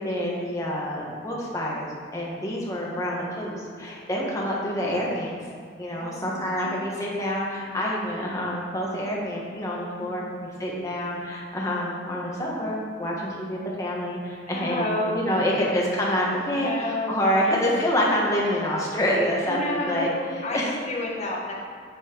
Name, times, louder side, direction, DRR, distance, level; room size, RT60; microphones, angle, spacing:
voice 1, 0.0-5.3 5.8-20.8, equal, 15° left, -4 dB, 1.4 m, -27 dB
voice 2, 6.0-6.8 9.9-10.5 14.5-15.7 16.5-17.4 19.4-21.5, left 2 dB, 35° left, -3 dB, 1.3 m, -31 dB
10.0 x 4.5 x 4.5 m, 2.1 s
head